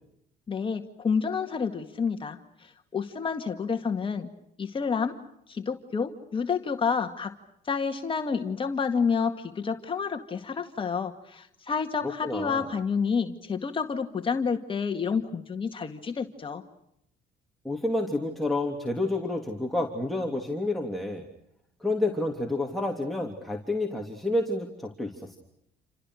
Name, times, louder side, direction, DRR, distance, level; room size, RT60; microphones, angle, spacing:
voice 1, 0.5-4.3 4.6-5.2 5.5-7.3 7.7-16.6, left 5 dB, 30° left, 5 dB, 2.1 m, -29 dB
voice 2, 12.2-12.6 17.6-21.3 21.8-25.4, left 2 dB, ahead, -1 dB, 3.3 m, -29 dB
29.0 x 28.0 x 6.5 m, 0.76 s
cardioid pair, 110°, 17 cm